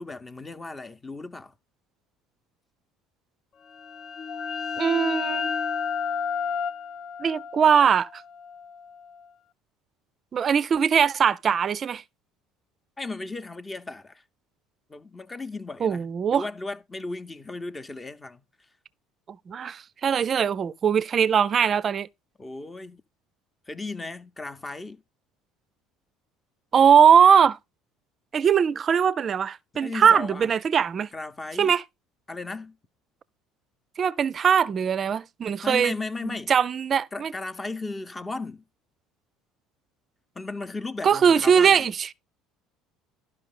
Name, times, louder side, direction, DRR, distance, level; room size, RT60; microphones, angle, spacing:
voice 1, 0.0-1.6 13.0-14.2 14.9-16.1 16.3-18.4 22.4-23.0 23.7-25.0 29.8-30.5 31.1-31.7 32.3-32.8 35.6-36.5 37.1-38.6 40.3-41.9, left 3 dB, 20° left, 0.7 m, -35 dB
sound 1, 3.7-9.2, left 6 dB, 45° left, 0.4 m, -31 dB
voice 2, 4.8-5.5 7.2-8.2 10.3-12.0 15.8-16.4 19.5-22.1 26.7-27.6 28.3-31.1 31.6-31.8 34.0-35.9 36.2-37.3 41.0-42.1, right 7 dB, 40° right, 0.4 m, -21 dB
11.5 x 5.4 x 3.7 m
hypercardioid pair, 75°, 0 cm